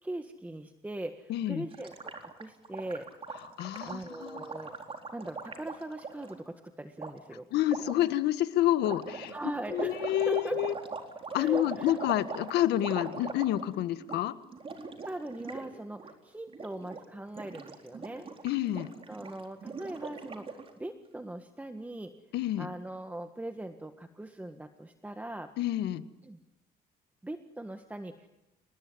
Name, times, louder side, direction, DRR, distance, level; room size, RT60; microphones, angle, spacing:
voice 1, 0.0-3.1 3.8-4.7 5.1-7.5 9.3-10.6 11.3-12.0 15.0-18.3 19.1-22.1 22.6-25.5 26.2-26.4 27.2-28.3, right 1 dB, 10° right, 6 dB, 1.7 m, -40 dB
voice 2, 1.3-1.6 3.6-4.5 7.5-9.3 9.7-10.7 11.3-14.3 18.4-18.9 22.3-22.7 25.6-26.0, left 13 dB, 80° left, 11 dB, 1.7 m, -28 dB
Gurgling, 1.7-6.3 7.0-7.1 7.7-8.0 8.8-13.8 14.0-14.2 14.5-15.7 15.9-16.1 16.5-17.0 17.3-20.7, right 4 dB, 35° right, 4.1 m, -41 dB
29.5 x 20.0 x 9.8 m, 0.95 s
cardioid pair, 110°, 17 cm